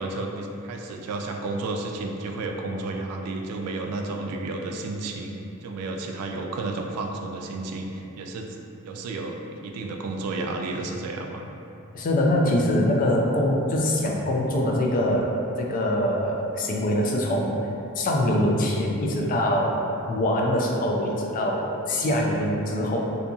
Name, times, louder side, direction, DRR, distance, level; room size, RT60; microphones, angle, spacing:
voice 1, 0.0-5.4 5.6-8.6 8.9-11.5, right 2 dB, 80° right, 7 dB, 0.3 m, -32 dB
voice 2, 11.9-15.3 15.6-17.7 18.0-23.0, left 1 dB, 40° left, -1 dB, 0.3 m, -23 dB
2.7 x 2.6 x 2.3 m, 2.8 s
head